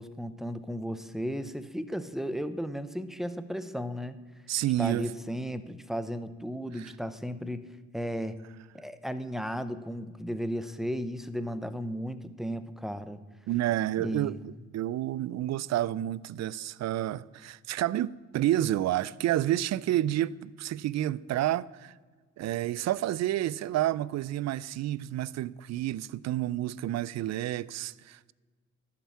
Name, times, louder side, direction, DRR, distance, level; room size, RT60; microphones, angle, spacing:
voice 1, 0.0-4.2 4.8-7.7 7.9-8.4 8.7-13.2 14.0-14.5, equal, ahead, 0.7 m, -35 dB
voice 2, 4.5-5.1 6.8-6.9 13.5-14.3 14.7-21.9 22.4-28.3, right 13 dB, 60° right, 0.4 m, -29 dB
12.0 x 5.8 x 8.4 m
cardioid pair, 90°, 30 cm